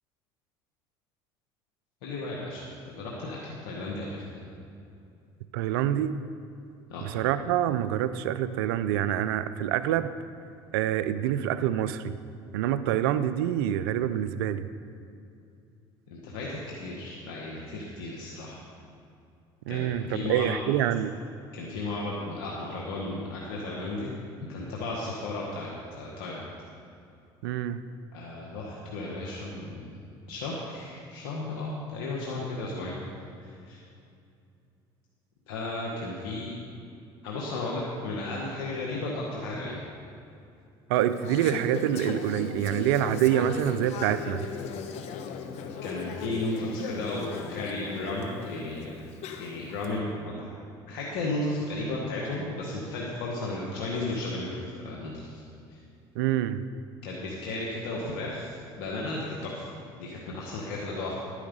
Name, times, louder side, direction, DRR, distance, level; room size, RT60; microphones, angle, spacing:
voice 1, 2.0-4.2 6.9-7.1 16.1-18.6 19.7-20.6 21.5-24.2 24.5-26.5 28.1-33.0 33.4-33.8 35.5-36.5 37.2-39.8 45.8-49.0 49.4-50.5 50.9-55.4 55.7-55.8 57.0-59.6 60.0-61.2, left 2 dB, 85° left, -4 dB, 1.6 m, -34 dB
voice 2, 5.5-6.2 7.0-10.1 10.7-12.2 12.5-14.6 19.7-21.1 27.4-27.8 40.9-44.4 56.2-56.6, right 11 dB, 90° right, 13 dB, 0.5 m, -26 dB
Conversation / Chatter, 41.0-49.9, left 5 dB, 65° left, 1.1 m, -37 dB
11.5 x 9.9 x 5.4 m, 2.5 s
supercardioid pair, 80°, 12 cm